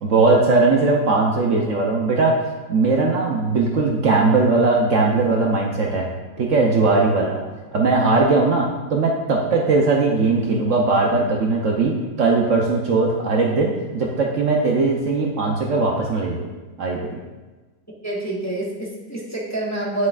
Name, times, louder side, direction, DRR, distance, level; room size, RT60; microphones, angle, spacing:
voice 1, 0.0-2.3 2.7-6.1 6.4-7.4 7.7-16.5 16.8-17.2, right 3 dB, 60° right, -1 dB, 1.0 m, -19 dB
voice 2, 18.0-20.1, right 2 dB, 10° left, -5 dB, 1.2 m, -27 dB
9.6 x 6.3 x 2.4 m, 1.2 s
omnidirectional pair, 1.6 m